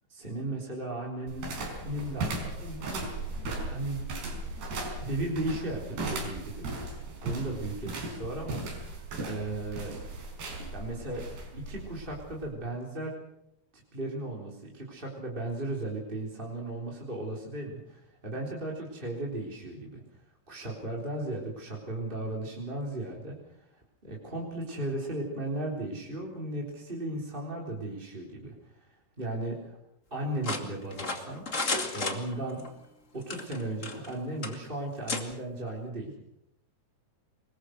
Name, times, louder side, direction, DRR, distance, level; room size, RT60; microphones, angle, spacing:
voice 1, 0.1-1.5 1.8-3.0 3.3-4.1 5.0-8.7 8.9-9.9 10.7-11.2 11.5-13.2 13.9-20.0 20.5-23.4 24.0-28.9 29.2-29.8 30.1-31.7 31.9-32.6 33.1-36.1, right 2 dB, 15° right, -2 dB, 3.6 m, -36 dB
sound 1, 1.3-12.5, right 2 dB, 70° right, 6.6 m, -37 dB
sound 2, 30.4-32.7 33.2-34.1 34.4-34.6 35.1-35.2, left 3 dB, 25° left, 1.9 m, -33 dB
25.5 x 22.0 x 6.5 m, 0.80 s
omnidirectional pair, 4.7 m